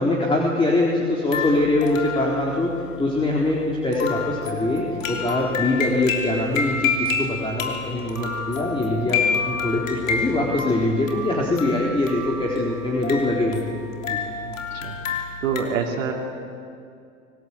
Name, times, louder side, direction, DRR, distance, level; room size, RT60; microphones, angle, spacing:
voice 1, 0.0-2.7 3.0-13.8 14.1-14.2, left 2 dB, 15° left, -2 dB, 4.0 m, -23 dB
sound 1, 1.3-15.6, left 5 dB, 80° left, 3.3 m, -29 dB
voice 2, 14.4-15.0 15.4-16.1, right 6 dB, 75° right, 1 dB, 3.2 m, -26 dB
25.0 x 19.5 x 8.6 m, 2.4 s
hypercardioid pair, 95°, 39 cm